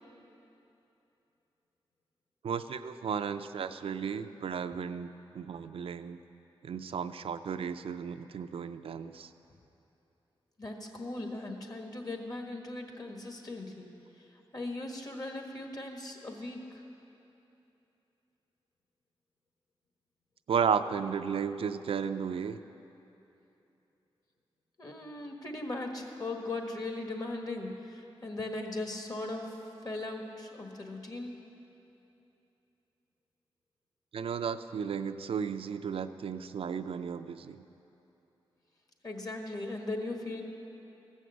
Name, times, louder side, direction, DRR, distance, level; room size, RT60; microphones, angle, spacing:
voice 1, 2.4-6.2 6.6-9.3 20.5-22.6 34.1-37.6, right 7 dB, 70° right, 9 dB, 0.4 m, -34 dB
voice 2, 10.6-13.9 14.5-16.8 24.8-31.4 39.0-40.4, left 2 dB, 40° left, 3 dB, 1.6 m, -38 dB
14.5 x 6.4 x 7.9 m, 2.9 s
cardioid pair, 65°, 10 cm